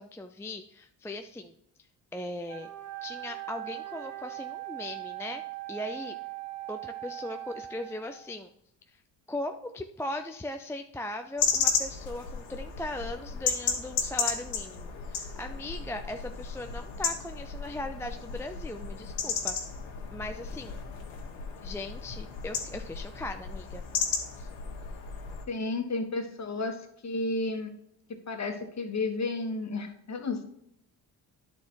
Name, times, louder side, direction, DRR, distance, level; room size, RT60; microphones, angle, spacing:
voice 1, 0.0-1.5 2.1-2.7 3.0-5.4 5.7-6.2 6.7-8.5 8.9-9.0 9.3-19.6 20.1-20.8 21.6-23.8 24.4-24.5, left 1 dB, 5° left, 6 dB, 0.4 m, -38 dB
Wind instrument woodwind instrument, 2.5-8.4, right 16 dB, 35° right, 1.8 m, -40 dB
sound 1, 11.4-25.4, left 6 dB, 75° left, 1.5 m, -34 dB
voice 2, 25.5-27.7 28.1-30.4, left 3 dB, 35° left, 6 dB, 1.6 m, -32 dB
10.5 x 4.3 x 4.6 m, 0.73 s
hypercardioid pair, 60°, 47 cm